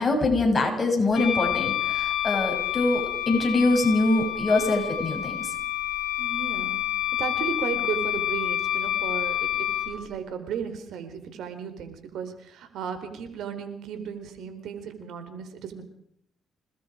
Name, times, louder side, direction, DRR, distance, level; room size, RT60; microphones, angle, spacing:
voice 1, 0.0-5.5, left 2 dB, 35° left, 2 dB, 7.7 m, -24 dB
Wind instrument woodwind instrument, 1.1-9.9, left 12 dB, 80° left, 3.7 m, -28 dB
voice 2, 6.2-6.8 7.2-15.8, right 7 dB, 80° right, 8 dB, 4.2 m, -35 dB
28.0 x 20.0 x 5.1 m, 0.71 s
cardioid pair, 90°, 0 cm